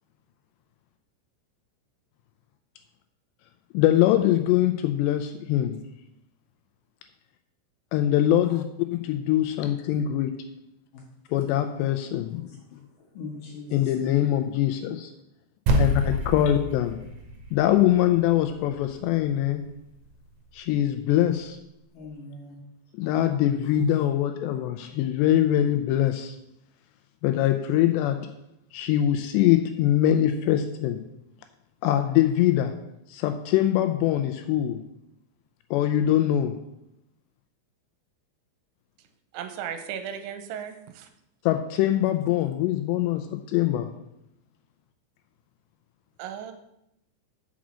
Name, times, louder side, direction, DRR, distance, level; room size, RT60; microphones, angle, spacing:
voice 1, 3.7-5.8 7.9-8.6 8.9-10.3 11.3-12.6 13.7-15.1 15.8-17.0 17.5-19.7 20.5-21.6 23.0-26.4 27.2-28.3 28.7-31.0 31.8-32.7 33.1-34.8 35.7-36.5 41.5-43.9, left 12 dB, 85° left, 7 dB, 2.6 m, -23 dB
voice 2, 13.1-14.3 21.9-22.6 23.0-23.1, left 3 dB, 60° left, -1 dB, 2.5 m, -41 dB
sound 1, 15.7-20.2, right 1 dB, 65° right, 3.0 m, -29 dB
voice 3, 39.3-41.1 46.2-46.5, right 8 dB, 80° right, 8 dB, 3.1 m, -36 dB
6.2 x 6.2 x 7.2 m, 0.83 s
omnidirectional pair, 5.3 m